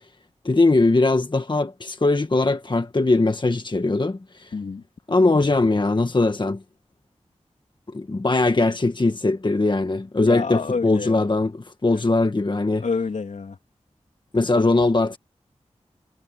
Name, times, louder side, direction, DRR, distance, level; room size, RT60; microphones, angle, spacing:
voice 1, 0.4-4.5 5.1-6.6 7.9-12.8 14.3-15.2, left 2 dB, 40° left, 1.7 m, -20 dB
voice 2, 4.5-4.8 10.2-11.3 12.8-13.6, left 4 dB, 85° left, 3.3 m, -28 dB
wide cardioid pair, 60°, 12 cm